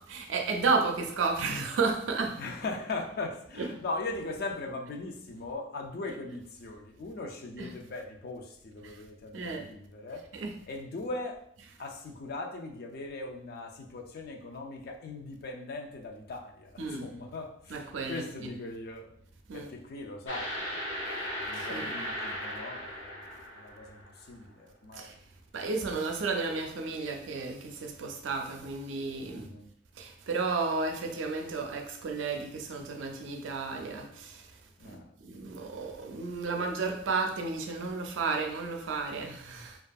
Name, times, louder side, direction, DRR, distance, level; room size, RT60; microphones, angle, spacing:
voice 1, 0.1-2.4 3.6-3.7 7.6-7.7 8.8-8.9 9.3-9.7 10.3-10.5 16.8-17.1 17.7-18.2 19.5-19.7 21.6-21.9 24.9-25.1 25.5-29.5 30.0-34.4 34.8-35.0 35.2-39.8, right 4 dB, 90° right, 3 dB, 0.4 m, -32 dB
voice 2, 2.3-10.3 10.7-11.4 11.8-19.1 19.5-23.3 23.6-25.1 29.3-29.7 34.8-35.1, left 2 dB, 55° left, 2 dB, 0.4 m, -40 dB
sound 1, 20.3-24.2, equal, 85° left, 0.7 m, -37 dB
2.6 x 2.4 x 2.3 m, 0.69 s
head